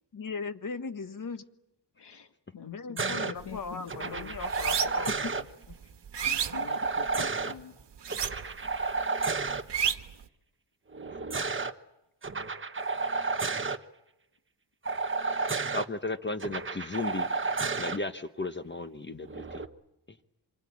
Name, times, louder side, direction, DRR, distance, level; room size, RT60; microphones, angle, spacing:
voice 1, 0.1-1.4 2.6-5.4, left 4 dB, 45° left, 10 dB, 1.4 m, -38 dB
voice 2, 2.0-4.4 5.1-5.2 5.7-5.9 6.2-7.8, left 7 dB, 65° left, 7 dB, 1.7 m, -44 dB
sound 1, 3.0-3.3 3.9-5.4 6.5-7.5 8.1-9.6 10.9-11.7 12.2-13.8 14.8-15.8 16.4-18.0 19.3-19.6, right 4 dB, 30° right, 1.1 m, -31 dB
sound 2, 3.4-3.7 4.0-5.2 5.6-7.3 8.0-8.7 9.0-10.2, right 8 dB, 70° right, 1.4 m, -31 dB
voice 3, 15.7-17.3 17.8-19.6, left 3 dB, 25° left, 9 dB, 1.1 m, -34 dB
26.5 x 24.0 x 8.7 m, 0.90 s
wide cardioid pair, 120°, 43 cm